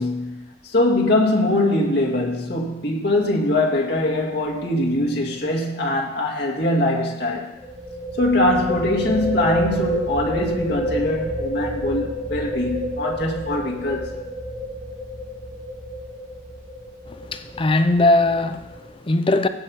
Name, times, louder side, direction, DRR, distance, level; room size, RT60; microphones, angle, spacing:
voice 1, 0.0-7.5 8.2-14.2, left 1 dB, 60° left, 2.0 m, -22 dB
sound 1, 4.5-4.7 5.0-5.1 7.6-18.9, equal, 20° right, 2.1 m, -29 dB
voice 2, 17.1-19.5, left 2 dB, 30° left, 0.6 m, -20 dB
16.0 x 5.5 x 5.7 m
head